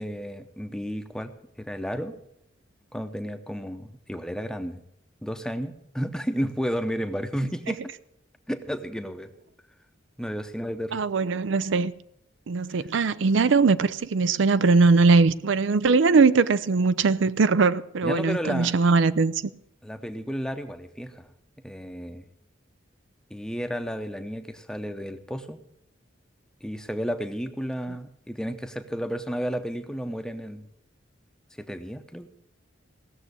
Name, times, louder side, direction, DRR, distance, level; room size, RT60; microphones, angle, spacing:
voice 1, 0.0-2.1 2.9-4.8 5.2-7.9 8.5-9.3 10.2-11.0 18.0-18.7 19.8-21.3 21.6-22.3 23.3-25.6 26.6-30.7 31.6-32.3, equal, 5° left, 0.7 m, -32 dB
voice 2, 10.9-11.9 12.5-19.4, right 4 dB, 75° right, 0.5 m, -21 dB
16.5 x 7.2 x 8.2 m
head